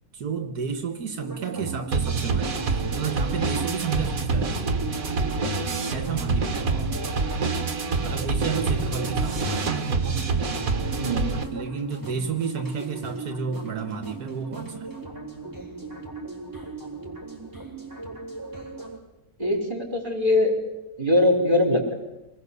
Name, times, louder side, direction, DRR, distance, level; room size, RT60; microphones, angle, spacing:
voice 1, 0.1-4.7 5.9-7.0 8.0-9.8 11.5-14.9, right 6 dB, 85° right, 7 dB, 1.9 m, -32 dB
sound 1, 1.2-19.0, right 3 dB, 10° right, 4.0 m, -38 dB
sound 2, 1.6-11.4, right 3 dB, 65° right, 2.0 m, -26 dB
voice 2, 11.0-11.3 19.4-20.5 21.0-21.9, left 1 dB, 30° right, 2 dB, 4.6 m, -22 dB
25.5 x 20.0 x 7.0 m, 0.99 s
omnidirectional pair, 1.6 m